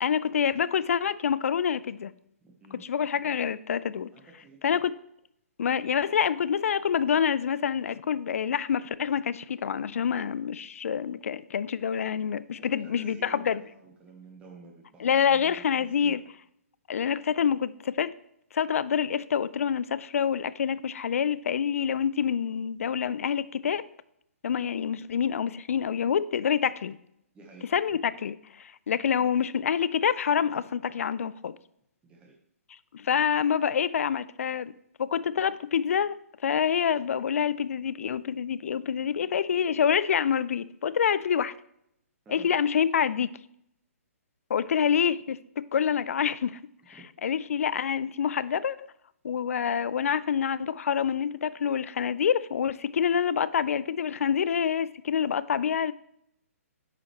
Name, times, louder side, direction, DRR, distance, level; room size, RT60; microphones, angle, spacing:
voice 1, 0.0-2.1 2.8-4.1 4.6-4.9 5.6-13.6 15.0-16.2 16.9-18.1 18.5-23.9 24.4-27.0 27.7-31.6 32.9-34.7 35.0-36.2 36.4-41.5 42.3-43.3 44.5-45.4 45.7-46.6 46.9-48.8 49.2-55.9, left 8 dB, 65° left, 0.4 m, -27 dB
voice 2, 2.4-2.8 4.1-4.8 12.6-16.2 27.3-27.7 32.0-32.3 42.2-42.5 46.9-47.0, right 3 dB, 15° right, 1.0 m, -51 dB
9.5 x 5.0 x 3.0 m
hypercardioid pair, 135°, 8 cm